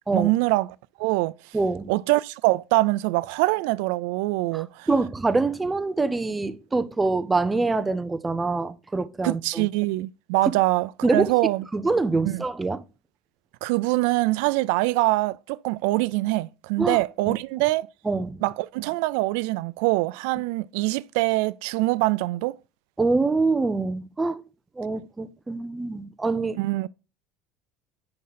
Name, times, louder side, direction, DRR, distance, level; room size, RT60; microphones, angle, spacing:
voice 1, 0.1-1.3 1.9-4.9 9.2-11.6 12.2-12.4 13.6-17.9 18.4-22.5 26.6-26.9, right 20 dB, 90° right, 0.3 m, -24 dB
voice 2, 1.5-1.9 4.5-9.7 10.5-10.6 11.0-11.3 11.7-12.8 16.8-17.0 17.3-17.4 18.0-18.4 23.0-24.4 24.8-26.6, right 3 dB, 10° right, 0.5 m, -25 dB
9.6 x 3.7 x 5.7 m
cardioid pair, 165°, 0 cm